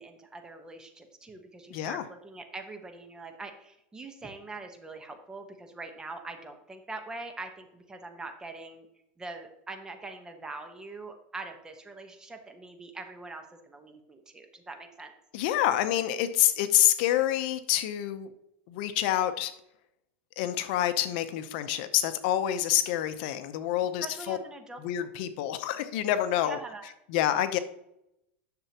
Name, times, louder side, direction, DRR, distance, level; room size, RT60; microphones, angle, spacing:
voice 1, 0.0-8.9 9.2-15.1 24.0-24.8 26.4-26.9, right 3 dB, 10° right, 6 dB, 1.0 m, -43 dB
voice 2, 1.7-2.0 15.3-18.3 18.7-19.5 20.4-24.4 24.8-26.6 27.1-27.6, left 12 dB, 60° left, 11 dB, 0.7 m, -27 dB
10.5 x 6.8 x 2.9 m, 0.80 s
supercardioid pair, 150°, 6 cm